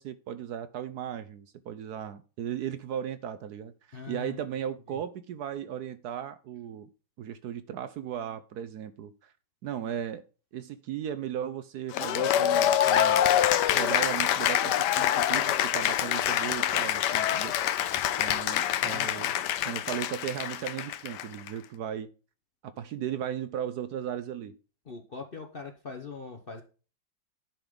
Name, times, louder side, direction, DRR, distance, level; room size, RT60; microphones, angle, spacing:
voice 1, 0.0-6.9 7.2-9.3 9.6-10.2 10.5-13.2 13.7-17.6 18.2-19.3 19.6-22.1 22.6-24.6, right 9 dB, 65° right, 1.1 m, -36 dB
voice 2, 3.9-4.4 4.9-5.0 18.7-19.3 24.9-26.6, left 5 dB, 40° left, 0.8 m, -42 dB
Cheering / Applause, 11.9-21.5, left 11 dB, 70° left, 1.2 m, -26 dB
10.5 x 5.4 x 3.7 m
omnidirectional pair, 2.0 m